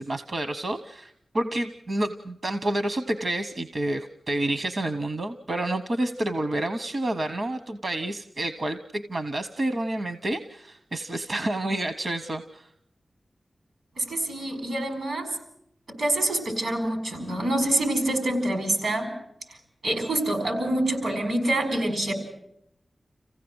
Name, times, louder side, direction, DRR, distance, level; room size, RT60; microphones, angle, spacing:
voice 1, 0.0-12.7, right 1 dB, 60° right, 9 dB, 1.0 m, -29 dB
voice 2, 14.0-15.3 16.0-19.1 19.8-22.1, right 1 dB, 90° right, 5 dB, 6.0 m, -26 dB
27.0 x 16.0 x 8.0 m, 0.76 s
wide cardioid pair, 70°, 0 cm